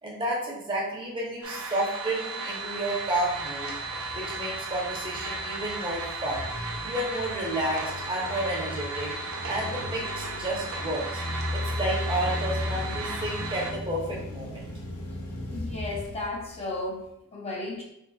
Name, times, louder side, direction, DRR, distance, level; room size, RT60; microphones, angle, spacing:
voice 1, 0.0-3.7 4.1-6.4 6.8-9.1 9.4-11.2 11.5-14.7, right 1 dB, 20° right, -2 dB, 0.8 m, -31 dB
sound 1, 1.4-13.7, right 3 dB, 70° right, 0.7 m, -35 dB
sound 2, 2.7-17.0, left 1 dB, 80° left, 0.8 m, -37 dB
voice 2, 15.4-17.8, left 2 dB, 30° left, -3 dB, 0.7 m, -34 dB
4.6 x 3.2 x 2.3 m, 0.79 s
head